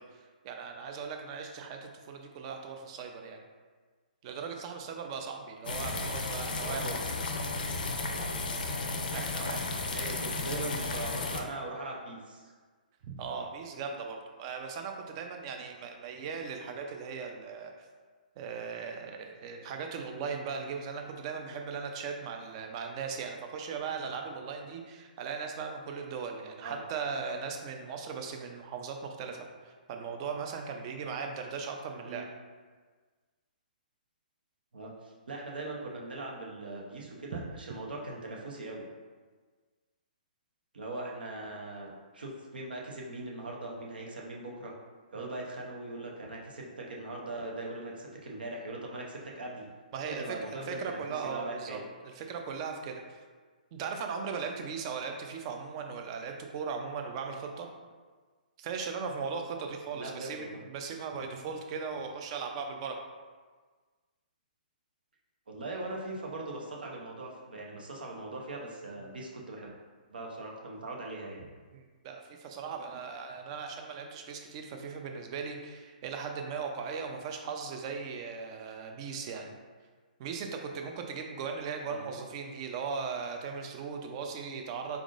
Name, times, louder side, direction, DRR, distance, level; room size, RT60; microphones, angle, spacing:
voice 1, 0.0-3.4 4.2-6.9 9.1-9.7 10.2-10.3 13.0-17.7 18.4-32.3 37.3-37.4 45.2-45.3 49.9-53.0 53.7-57.7 58.6-63.0 71.7-79.6 80.2-85.0, right 5 dB, 35° right, 3 dB, 0.5 m, -38 dB
sound 1, 5.6-11.4, left 3 dB, 70° left, 0.5 m, -34 dB
voice 2, 6.4-7.0 9.0-9.3 9.9-12.5 26.6-26.8 32.0-32.3 34.7-34.9 35.3-38.8 40.7-44.7 45.1-49.7 50.1-51.8 59.9-60.6 65.5-69.7 70.1-71.4 81.9-82.1, right 2 dB, 80° right, -2 dB, 0.9 m, -40 dB
3.9 x 3.6 x 2.5 m, 1.4 s
hypercardioid pair, 135°, 5 cm